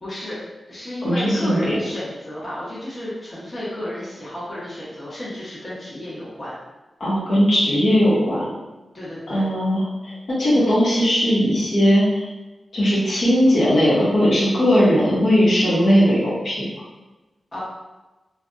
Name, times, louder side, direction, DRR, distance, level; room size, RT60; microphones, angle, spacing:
voice 1, 0.0-0.4 0.7-6.6 8.9-9.5 17.5-17.6, left 1 dB, 30° left, -8 dB, 1.0 m, -32 dB
voice 2, 1.0-1.8 7.0-8.5 9.3-12.2 12.7-16.7, equal, 70° left, -8 dB, 1.1 m, -18 dB
3.3 x 2.2 x 2.5 m, 1.1 s
cardioid pair, 75°, 0 cm